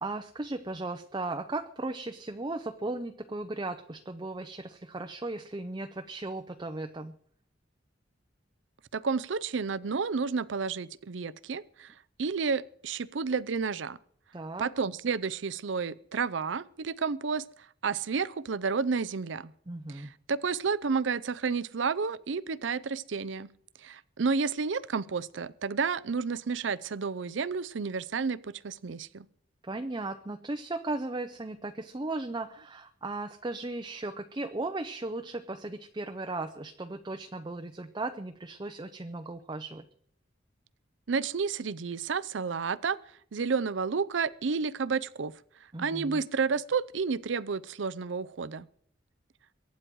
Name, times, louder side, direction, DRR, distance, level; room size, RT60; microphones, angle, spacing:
voice 1, 0.0-7.1 14.3-14.7 19.7-20.1 29.6-39.9 45.7-46.2, right 2 dB, 25° right, 7 dB, 0.6 m, -36 dB
voice 2, 8.9-11.9 12.2-14.0 14.6-17.4 17.8-19.5 19.9-23.5 23.8-29.3 41.1-43.0 43.3-45.3 45.8-48.7, right 5 dB, 75° right, 17 dB, 0.6 m, -31 dB
23.0 x 9.4 x 4.7 m, 0.62 s
head